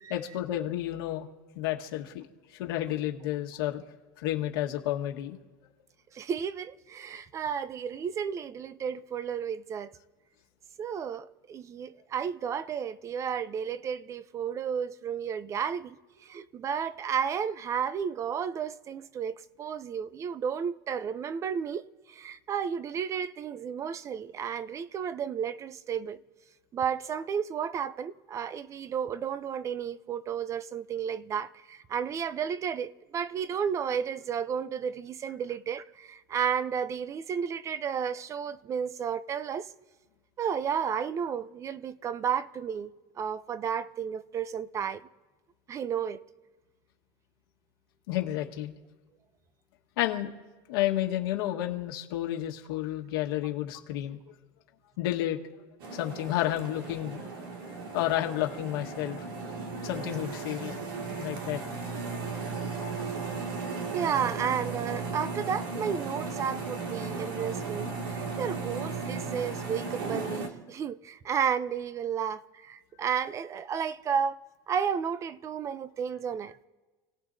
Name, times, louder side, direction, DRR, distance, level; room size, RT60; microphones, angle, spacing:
voice 1, 0.1-1.3 1.5-2.2 2.5-3.8 4.2-5.4 48.1-48.7 50.0-50.3 50.7-54.2 55.0-55.4 55.9-57.3 57.9-59.2 59.8-60.8 61.2-61.6, left 13 dB, 80° left, 1.5 m, -31 dB
voice 2, 6.1-9.9 10.8-26.2 26.7-39.7 40.4-42.9 43.2-45.0 45.7-46.2 63.7-74.4 74.7-76.7, right 7 dB, 25° right, 0.5 m, -32 dB
sound 1, 55.8-70.5, right 4 dB, 80° right, 2.2 m, -36 dB
29.0 x 18.0 x 2.7 m
supercardioid pair, 140°, 12 cm